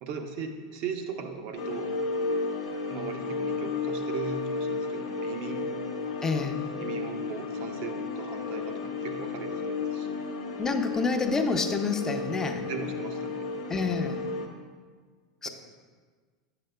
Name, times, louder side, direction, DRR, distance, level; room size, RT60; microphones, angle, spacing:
voice 1, 0.0-1.9 2.9-5.7 6.8-10.2 12.6-13.5, right 6 dB, 60° right, 6 dB, 0.7 m, -38 dB
sound 1, 1.6-14.5, left 4 dB, 80° left, 0.7 m, -33 dB
voice 2, 6.2-6.6 10.6-12.6 13.7-14.2 15.4-15.5, left 4 dB, 20° left, 6 dB, 0.6 m, -28 dB
8.5 x 6.6 x 2.2 m, 1.5 s
hypercardioid pair, 95°, 2 cm